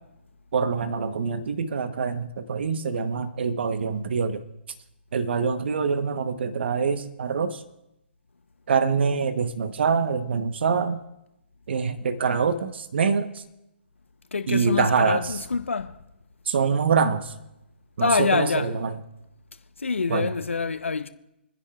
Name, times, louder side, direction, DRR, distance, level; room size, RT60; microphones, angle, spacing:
voice 1, 0.5-4.4 5.1-7.6 8.7-11.0 11.7-13.4 14.5-15.4 16.4-17.3 18.0-19.0 20.1-20.3, right 5 dB, 60° right, 1.0 m, -25 dB
voice 2, 14.3-16.0 18.0-18.7 19.8-21.1, left 4 dB, 85° left, 0.9 m, -25 dB
28.5 x 10.5 x 2.4 m
hypercardioid pair, 140°, 7 cm